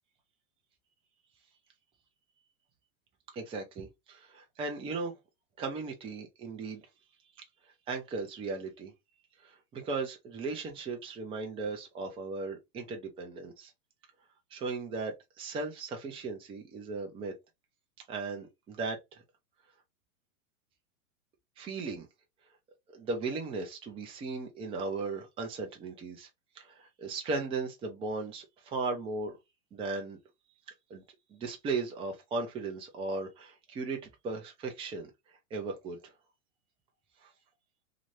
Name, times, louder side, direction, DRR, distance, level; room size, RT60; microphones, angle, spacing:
voice 1, 3.3-5.1 5.6-6.9 7.9-8.9 9.4-13.7 14.5-17.3 18.1-19.0 21.6-22.1 22.9-26.3 26.6-29.4 29.7-30.2 30.9-31.0 31.3-34.0 34.2-35.1 35.5-36.0 37.2-37.3, right 3 dB, 15° right, 0.6 m, -37 dB
2.7 x 2.5 x 3.2 m
hypercardioid pair, 130°, 42 cm